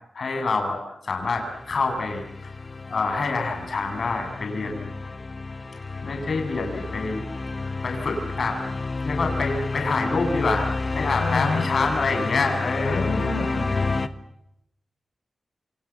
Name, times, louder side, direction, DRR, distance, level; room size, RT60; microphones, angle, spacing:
voice 1, 0.1-2.5 2.9-4.9 6.0-7.2 7.8-8.6 9.0-10.7 10.9-13.1, left 3 dB, 55° left, 4 dB, 7.7 m, -26 dB
sound 1, 1.2-14.1, left 3 dB, 35° left, 1.6 m, -30 dB
voice 2, 11.2-11.9 12.8-14.1, left 3 dB, 70° left, 1 dB, 5.9 m, -30 dB
29.0 x 27.5 x 7.4 m, 0.80 s
wide cardioid pair, 145°, 0 cm